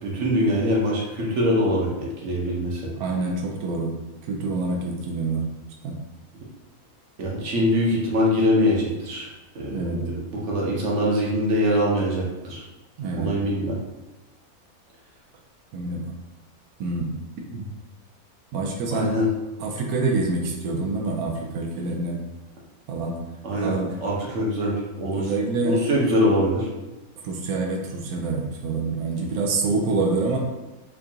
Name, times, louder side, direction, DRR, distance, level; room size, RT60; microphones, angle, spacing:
voice 1, 0.0-2.9 7.2-9.3 9.5-12.6 13.1-13.8 18.9-19.3 23.4-25.3 25.6-26.7, equal, 55° right, -3 dB, 1.1 m, -23 dB
voice 2, 3.0-4.0 4.2-5.5 5.8-6.0 9.7-10.0 13.0-13.3 15.7-16.1 16.8-17.1 17.5-17.6 18.5-19.1 19.6-22.2 22.9-23.2 23.5-23.9 25.1-25.7 27.2-30.4, right 3 dB, 85° right, 0 dB, 1.1 m, -26 dB
4.5 x 2.4 x 2.7 m, 1.1 s
omnidirectional pair, 1.6 m